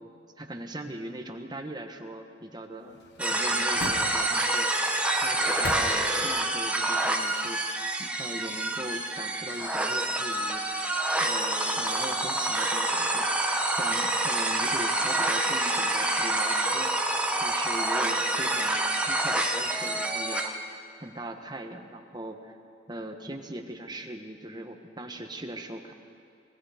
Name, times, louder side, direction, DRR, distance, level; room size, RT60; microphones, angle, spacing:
voice 1, 0.4-4.7 5.2-7.6 8.0-10.7 11.2-13.3 13.7-16.9 17.4-20.7 21.0-22.6 22.9-25.9, right 1 dB, 25° right, 4 dB, 1.4 m, -40 dB
sound 1, 2.9-4.6 5.2-6.5 6.8-6.9, left 2 dB, 65° left, 1.0 m, -40 dB
sound 2, 3.2-20.5, right 2 dB, 5° right, 1.2 m, -27 dB
25.5 x 20.0 x 5.1 m, 2.4 s
head